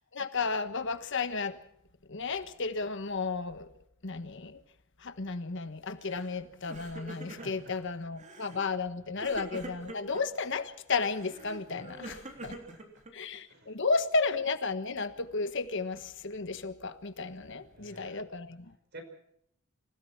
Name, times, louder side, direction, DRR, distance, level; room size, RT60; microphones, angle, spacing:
voice 1, 0.1-1.6 2.1-3.7 4.0-4.6 5.0-12.5 13.1-18.7, left 4 dB, 60° left, 1.3 m, -33 dB
Crying sobbing, 6.0-6.4 6.6-7.7 8.2-8.6 9.2-10.2 11.1-13.4, right 1 dB, 35° right, 3.5 m, -45 dB
voice 2, 7.3-7.8 9.0-9.2 11.7-11.8 12.3-12.5 13.5-13.8 17.6-18.3 18.9-19.0, right 2 dB, 55° right, 5.0 m, -50 dB
26.5 x 16.5 x 5.9 m
head